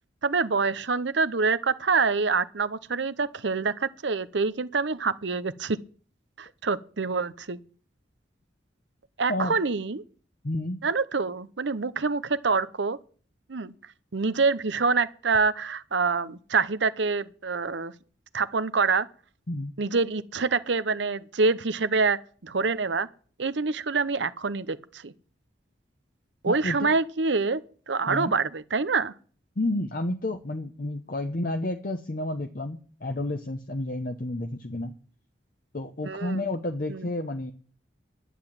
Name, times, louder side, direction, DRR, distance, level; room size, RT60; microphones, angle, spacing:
voice 1, 0.2-5.8 6.4-7.6 9.2-10.0 10.8-13.0 13.5-13.7 14.1-17.9 18.3-19.1 19.8-23.1 23.4-25.1 26.4-27.6 27.9-29.1 36.0-36.4 36.9-37.1, right 4 dB, 75° right, 0.8 m, -26 dB
voice 2, 10.4-10.8 19.5-19.7 26.5-26.9 28.1-28.3 29.6-34.9 35.7-37.5, left 1 dB, 50° left, 0.9 m, -30 dB
11.0 x 7.9 x 8.7 m
head